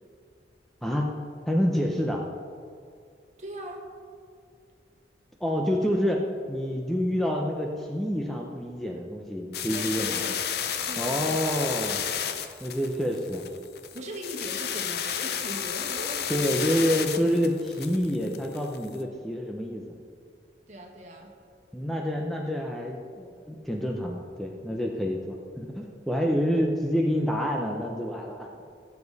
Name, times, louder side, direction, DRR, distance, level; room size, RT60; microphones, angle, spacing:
voice 1, 1.5-2.2 5.4-10.4 11.0-12.1 12.6-13.5 16.3-19.9 21.7-28.5, equal, ahead, 0 dB, 0.7 m, -28 dB
voice 2, 3.4-3.8 9.7-10.4 10.9-11.4 13.9-16.7 20.7-21.3, right 1 dB, 40° right, 0 dB, 1.8 m, -39 dB
sound 1, 9.5-19.0, left 8 dB, 65° left, 0.7 m, -32 dB
17.0 x 7.1 x 4.1 m, 2.2 s
head